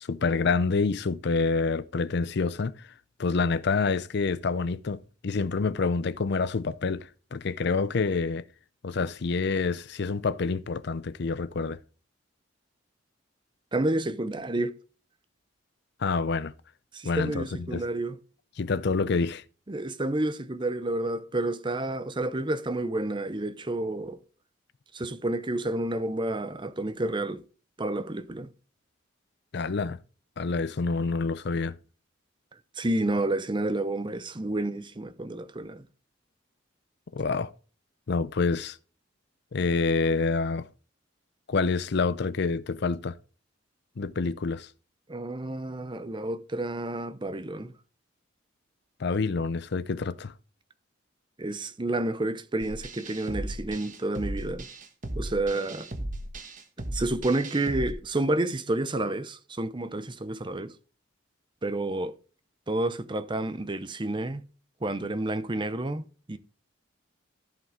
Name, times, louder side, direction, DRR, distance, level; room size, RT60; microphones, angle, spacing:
voice 1, 0.1-2.9 3.2-8.4 8.8-11.8 16.0-16.5 17.0-17.4 17.7-17.8 18.6-19.4 29.5-30.0 30.4-31.8 37.1-37.5 38.1-38.8 39.5-40.7 41.5-43.1 44.0-44.7 49.0-50.3, left 4 dB, 60° left, 0.5 m, -27 dB
voice 2, 13.7-14.7 16.9-18.2 19.7-24.2 24.9-27.4 27.8-28.5 32.8-35.9 45.1-47.7 51.4-54.7 55.2-55.9 56.9-60.7 61.6-62.1 62.7-64.4 64.8-66.4, right 2 dB, 25° right, 0.7 m, -30 dB
sound 1, 52.6-57.9, right 1 dB, 40° right, 1.4 m, -36 dB
14.5 x 5.2 x 3.8 m
head